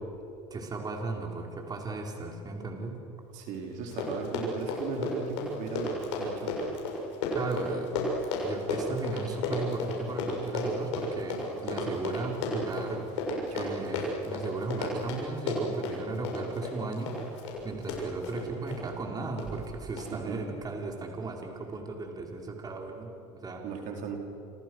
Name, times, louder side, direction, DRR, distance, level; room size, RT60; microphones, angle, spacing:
voice 1, 0.5-3.0 7.3-7.9 8.4-13.1 13.5-23.6, right 3 dB, 25° right, 1 dB, 4.6 m, -36 dB
voice 2, 3.3-6.7 13.6-14.0 20.1-20.5 23.6-24.2, right 4 dB, 65° right, 2 dB, 4.5 m, -37 dB
Run, 3.5-3.6 3.8-18.8 19.4-19.7 20.0-20.1, left 2 dB, 85° left, 6.8 m, -33 dB
28.5 x 28.5 x 6.4 m, 2.7 s
supercardioid pair, 100°, 14 cm